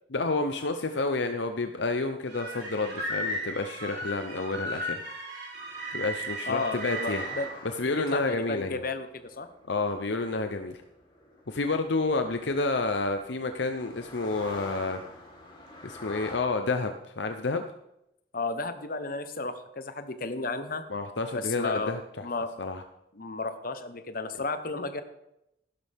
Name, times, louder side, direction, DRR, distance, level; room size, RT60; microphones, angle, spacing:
voice 1, 0.1-5.0 5.9-7.3 7.8-8.8 9.7-10.8 11.5-15.0 15.8-17.7 20.9-22.2 22.6-22.8, left 3 dB, 70° left, 7 dB, 0.8 m, -29 dB
sound 1, 2.3-7.4, right 1 dB, 80° right, 6.3 m, -35 dB
sound 2, 5.5-16.4, left 1 dB, 25° left, 3.2 m, -48 dB
voice 2, 6.5-7.5 7.8-9.5 18.3-20.8 21.3-22.5 23.1-25.0, left 3 dB, 50° left, 9 dB, 1.1 m, -33 dB
15.5 x 12.0 x 3.6 m, 0.83 s
head